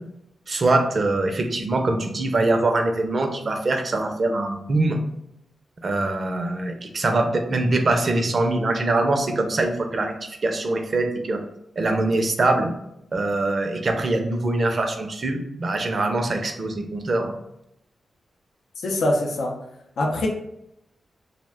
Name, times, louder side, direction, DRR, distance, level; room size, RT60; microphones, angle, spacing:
voice 1, 0.5-5.0 5.8-11.4 11.8-12.7 13.1-17.4, right 2 dB, 55° right, 5 dB, 0.5 m, -23 dB
voice 2, 18.8-19.5 20.0-20.3, left 1 dB, 75° left, 1 dB, 0.4 m, -23 dB
2.4 x 2.1 x 3.4 m, 0.81 s
supercardioid pair, 45°, 0 cm